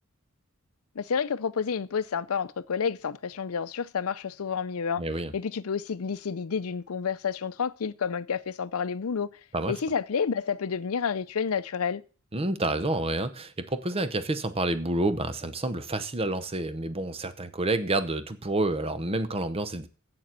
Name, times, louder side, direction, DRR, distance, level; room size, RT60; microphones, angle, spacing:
voice 1, 1.0-5.0 5.3-9.3 9.7-12.0, left 6 dB, 80° left, 0.5 m, -30 dB
voice 2, 5.0-5.3 9.5-9.7 12.3-19.9, right 2 dB, 25° right, 0.8 m, -29 dB
7.7 x 6.9 x 7.4 m
head